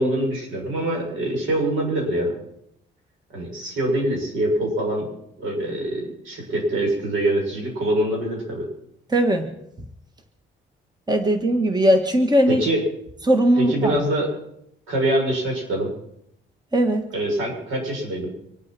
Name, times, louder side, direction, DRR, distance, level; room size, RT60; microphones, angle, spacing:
voice 1, 0.0-2.3 3.3-5.1 5.4-8.7 12.5-12.8 13.5-14.3 14.9-15.9 17.1-18.3, right 1 dB, 85° right, 0 dB, 7.2 m, -24 dB
voice 2, 9.1-9.5 11.1-12.6 13.2-14.0 16.7-17.0, right 1 dB, 20° right, 6 dB, 1.8 m, -19 dB
25.5 x 8.7 x 6.2 m, 0.76 s
cardioid pair, 90°, 20 cm